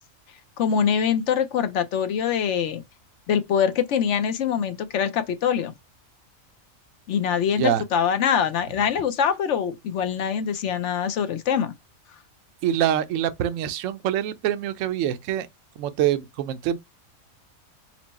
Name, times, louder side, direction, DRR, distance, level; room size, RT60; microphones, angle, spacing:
voice 1, 0.6-2.8 3.3-5.7 7.1-11.7, left 7 dB, 65° left, 0.8 m, -24 dB
voice 2, 12.6-15.5 15.8-16.8, right 11 dB, 70° right, 0.9 m, -25 dB
4.5 x 2.0 x 4.0 m
omnidirectional pair, 1.4 m